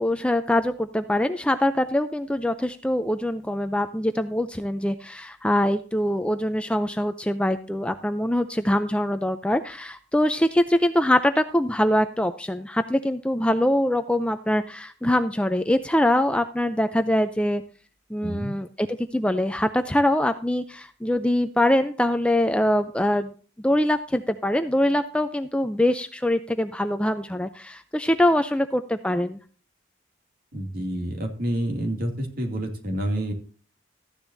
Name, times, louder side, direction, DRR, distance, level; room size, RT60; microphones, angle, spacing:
voice 1, 0.0-17.6 18.1-23.3 23.6-29.4, left 1 dB, 5° left, 9 dB, 0.4 m, -23 dB
voice 2, 18.2-18.6 30.5-33.3, right 1 dB, 50° right, 3 dB, 2.5 m, -28 dB
14.0 x 10.5 x 2.7 m, 0.39 s
head